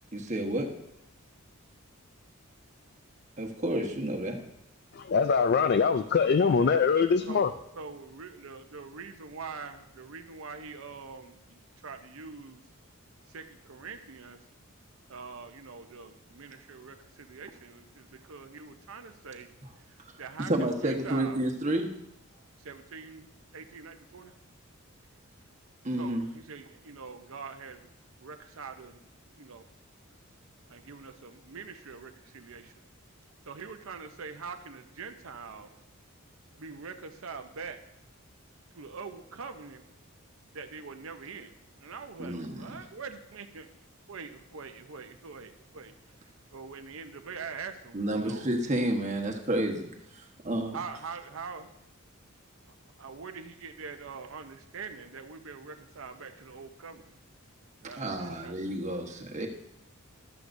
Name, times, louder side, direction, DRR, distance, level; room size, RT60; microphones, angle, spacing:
voice 1, 0.1-0.7 3.4-4.4 20.5-21.9 25.8-26.3 42.2-42.8 47.9-50.8 58.0-59.5, right 1 dB, 35° right, 2 dB, 1.2 m, -30 dB
voice 2, 4.9-7.5, left 5 dB, 50° left, 10 dB, 0.3 m, -23 dB
voice 3, 6.4-6.8 7.3-12.6 13.2-14.5 15.1-19.5 19.7-21.4 22.3-24.4 26.0-27.9 28.2-29.1 29.4-29.7 30.7-32.8 33.5-35.7 36.5-37.8 38.7-39.9 40.5-41.5 41.8-43.7 44.1-48.5 50.7-51.7 53.0-57.1 57.8-58.6, right 5 dB, 70° right, 7 dB, 0.7 m, -44 dB
14.5 x 12.0 x 2.6 m, 0.81 s
head